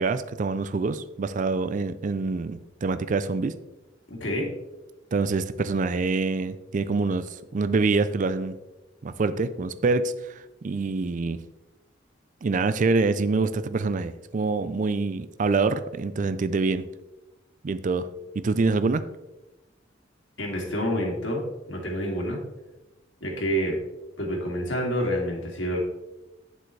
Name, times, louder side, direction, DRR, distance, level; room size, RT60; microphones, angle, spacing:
voice 1, 0.0-3.5 5.1-8.6 9.0-11.4 12.4-16.9 17.6-18.1 18.4-19.0, right 3 dB, 45° right, 13 dB, 0.4 m, -25 dB
voice 2, 4.1-4.5 20.4-22.4 23.2-23.8 24.2-25.8, equal, 85° left, -1 dB, 2.4 m, -28 dB
9.1 x 7.8 x 3.2 m, 1.0 s
head